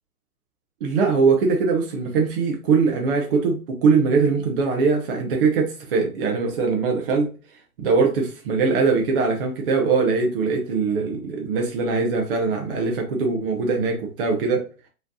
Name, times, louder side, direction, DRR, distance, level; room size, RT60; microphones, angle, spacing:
voice 1, 0.8-14.6, right 4 dB, 40° right, 0.9 m, -22 dB
5.0 x 3.2 x 2.7 m
figure-of-eight pair, 130°, 44 cm